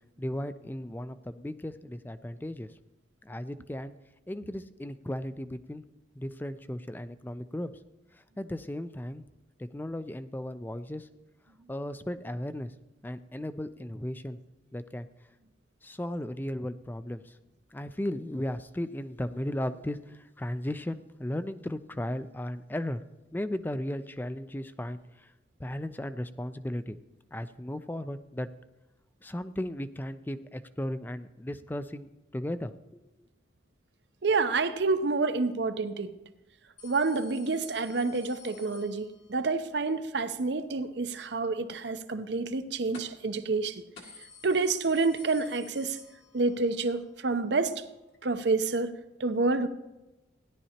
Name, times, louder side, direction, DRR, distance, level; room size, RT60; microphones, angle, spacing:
voice 1, 0.2-2.7 3.2-3.9 4.3-5.8 6.2-7.7 8.1-9.2 9.6-11.1 11.7-12.7 13.0-14.4 14.7-15.1 15.8-17.4 17.7-23.0 23.3-25.3 25.6-27.0 27.3-28.5 29.2-33.0, left 1 dB, 10° left, 0.4 m, -36 dB
voice 2, 34.2-36.1 36.8-43.8 44.4-46.0 46.3-47.8 48.2-49.7, right 3 dB, 65° right, 0.7 m, -28 dB
sound 1, 36.8-39.5 42.9-43.3 43.6-43.7 44.0-46.7 47.0-47.1 48.1-48.2, left 5 dB, 70° left, 2.0 m, -52 dB
16.5 x 11.0 x 2.9 m
head